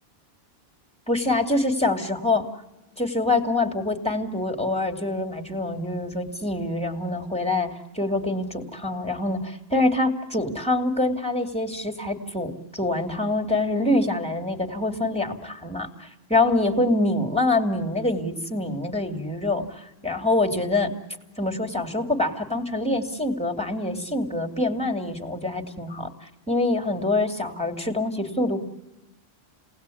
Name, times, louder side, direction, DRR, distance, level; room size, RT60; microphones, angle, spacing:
voice 1, 1.1-2.5 3.0-20.9 21.4-26.1 26.5-28.6, left 2 dB, 5° left, 4 dB, 2.7 m, -25 dB
30.0 x 19.5 x 8.6 m, 0.98 s
omnidirectional pair, 1.1 m